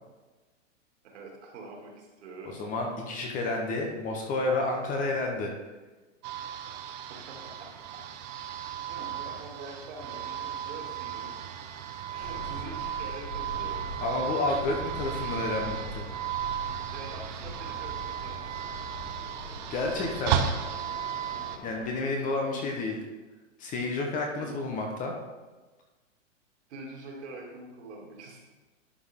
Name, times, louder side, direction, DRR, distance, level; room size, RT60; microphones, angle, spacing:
voice 1, 1.0-2.5 6.6-6.8 7.1-8.0 8.9-11.3 12.1-13.8 16.8-18.4 19.9-20.2 22.4-22.6 24.4-24.5 26.7-28.4, right 2 dB, 60° right, -1 dB, 2.6 m, -45 dB
voice 2, 2.6-5.5 14.0-16.0 19.7-20.4 21.6-22.9 23.6-25.1, left 2 dB, 20° left, 2 dB, 0.9 m, -30 dB
sound 1, 6.2-21.6, right 9 dB, 35° right, 0.7 m, -35 dB
sound 2, 12.2-22.0, left 1 dB, 50° left, 2.0 m, -43 dB
11.5 x 4.7 x 3.6 m, 1.2 s
hypercardioid pair, 140°, 38 cm